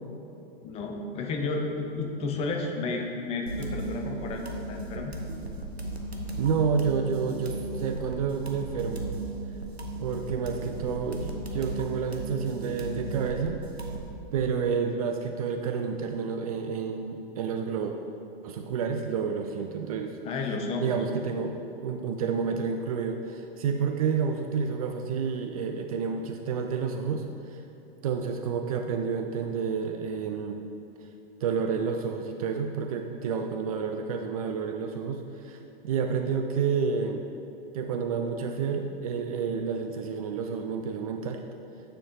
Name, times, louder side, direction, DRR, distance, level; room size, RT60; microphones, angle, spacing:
voice 1, 0.6-5.2 20.2-20.9, left 3 dB, 20° left, 2 dB, 0.6 m, -32 dB
sound 1, 3.5-14.1, right 2 dB, 85° right, 0.8 m, -36 dB
voice 2, 6.4-9.1 10.0-13.6 14.3-17.9 18.4-20.2 20.8-27.6 28.0-30.6 31.4-37.2 37.7-41.4, right 6 dB, 35° right, 4 dB, 0.4 m, -30 dB
9.3 x 4.5 x 3.8 m, 2.9 s
figure-of-eight pair, 100°, 31 cm